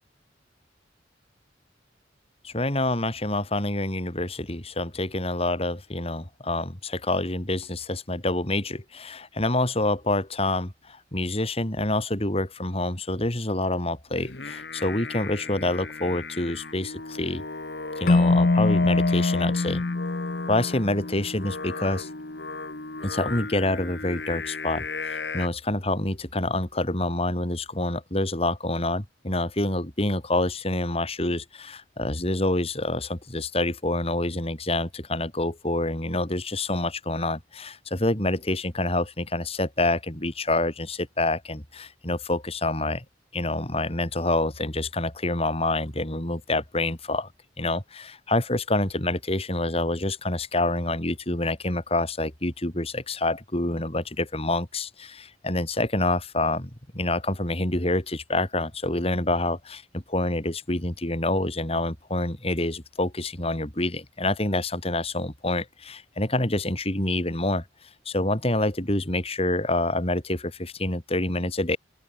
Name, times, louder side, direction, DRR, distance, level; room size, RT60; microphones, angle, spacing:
voice 1, 2.4-17.4 18.0-19.8 20.5-22.1 23.0-43.0 43.3-47.3 47.6-67.6 68.0-71.8, left 2 dB, 35° left, 3.3 m, -27 dB
Singing, 14.1-25.5, left 3 dB, 65° left, 2.2 m, -35 dB
Keyboard (musical), 18.1-21.3, left 3 dB, 50° left, 0.6 m, -23 dB
open air
head